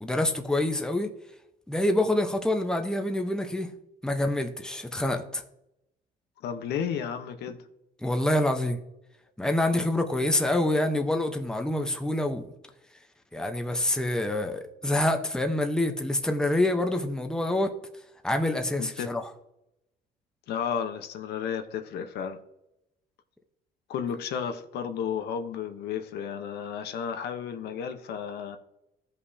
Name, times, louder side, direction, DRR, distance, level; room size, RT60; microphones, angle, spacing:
voice 1, 0.0-1.1 1.7-3.7 4.0-5.4 8.0-8.8 9.4-12.5 13.3-17.7 18.2-19.3, left 1 dB, 5° left, 0.9 m, -26 dB
voice 2, 6.4-7.7 18.8-19.1 20.5-22.4 23.9-28.6, left 7 dB, 75° left, 1.0 m, -33 dB
15.0 x 5.5 x 2.8 m
cardioid pair, 110°, 17 cm